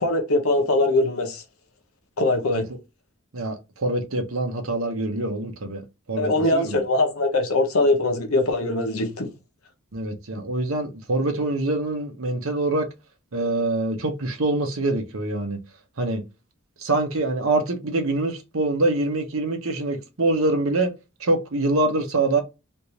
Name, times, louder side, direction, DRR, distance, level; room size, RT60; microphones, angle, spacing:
voice 1, 0.0-1.4 2.2-2.7 6.2-9.3, left 2 dB, 85° left, 0.9 m, -22 dB
voice 2, 3.3-5.8 6.1-6.8 9.9-12.9 13.3-15.6 16.0-16.2 16.8-20.9 21.2-22.4, right 2 dB, 75° right, 0.9 m, -25 dB
3.4 x 2.6 x 2.9 m
head